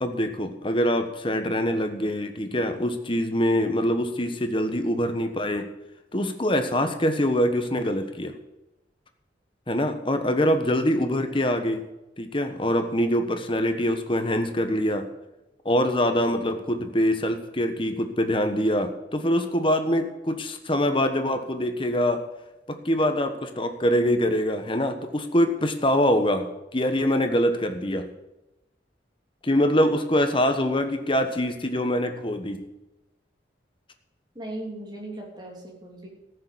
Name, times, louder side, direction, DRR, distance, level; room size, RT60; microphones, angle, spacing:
voice 1, 0.0-5.7 6.1-8.3 9.7-11.8 12.2-15.1 15.6-22.2 22.7-28.1 29.4-32.6, equal, 30° left, 7 dB, 1.2 m, -24 dB
voice 2, 34.3-36.1, right 1 dB, 25° right, -1 dB, 3.3 m, -37 dB
14.5 x 6.8 x 8.6 m, 0.98 s
head